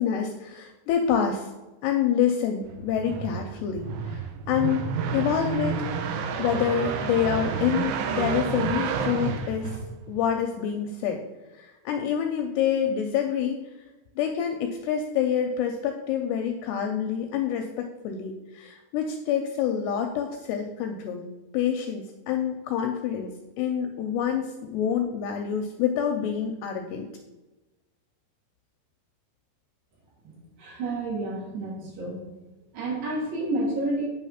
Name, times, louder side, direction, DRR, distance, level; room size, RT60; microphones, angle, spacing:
voice 1, 0.0-1.5 1.8-5.8 6.4-9.8 10.1-11.2 11.5-13.6 14.2-21.3 21.5-27.1, left 8 dB, 85° left, 4 dB, 2.4 m, -27 dB
sound 1, 2.7-10.3, right 6 dB, 85° right, 2.2 m, -30 dB
voice 2, 30.2-32.2 32.7-34.0, right 2 dB, 65° right, -6 dB, 4.3 m, -30 dB
9.3 x 3.4 x 5.7 m, 1.1 s
omnidirectional pair, 5.2 m